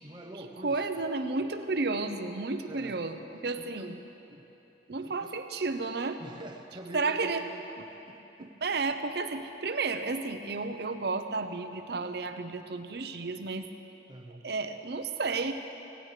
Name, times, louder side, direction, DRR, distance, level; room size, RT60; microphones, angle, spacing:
voice 1, 0.0-1.0 2.7-3.0 3.6-3.9 4.3-4.5 5.0-5.3 6.2-7.7 8.1-8.5 14.1-14.4, right 1 dB, 25° right, 2 dB, 0.8 m, -45 dB
voice 2, 0.6-4.0 4.9-6.2 6.9-7.5 7.8-7.9 8.4-13.7 14.4-15.5, right 3 dB, 60° right, 8 dB, 0.7 m, -32 dB
18.0 x 16.0 x 3.3 m, 2.9 s
head